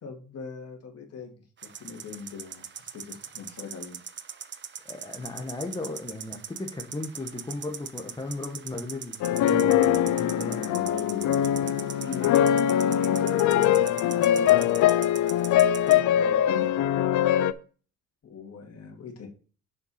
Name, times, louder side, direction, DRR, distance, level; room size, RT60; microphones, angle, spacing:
voice 1, 0.0-4.0 10.2-14.8 15.8-16.8 18.2-19.3, left 5 dB, 55° left, 2.3 m, -41 dB
sound 1, 1.6-16.0, right 7 dB, 40° right, 0.7 m, -41 dB
voice 2, 4.8-10.6, left 2 dB, 15° left, 1.3 m, -36 dB
sound 2, 9.2-17.5, left 11 dB, 75° left, 0.6 m, -22 dB
6.8 x 4.6 x 5.7 m
cardioid pair, 90°, 30 cm